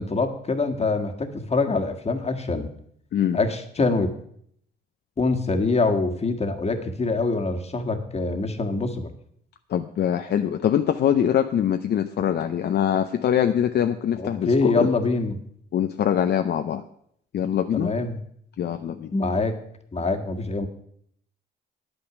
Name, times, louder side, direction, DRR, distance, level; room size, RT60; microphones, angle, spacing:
voice 1, 0.0-2.7 3.3-4.1 5.2-9.1 14.2-15.4 17.7-18.2 19.1-19.6 19.9-20.7, left 3 dB, 30° left, 5 dB, 1.6 m, -24 dB
voice 2, 9.7-14.9 15.7-16.8 17.3-17.9 18.6-19.1, left 9 dB, 55° left, 7 dB, 0.6 m, -23 dB
9.9 x 8.8 x 6.1 m, 0.67 s
cardioid pair, 90°, 20 cm